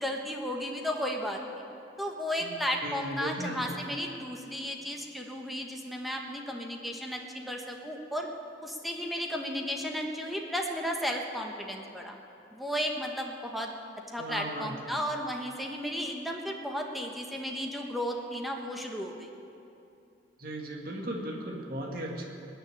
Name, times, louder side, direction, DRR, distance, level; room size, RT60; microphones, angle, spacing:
voice 1, 0.0-1.6 2.0-8.3 8.6-12.1 12.5-13.7 14.1-19.3, equal, ahead, 1 dB, 1.3 m, -34 dB
voice 2, 2.4-3.8 14.2-14.9 20.4-22.2, right 1 dB, 55° right, 0 dB, 2.0 m, -37 dB
20.0 x 6.8 x 9.9 m, 2.7 s
head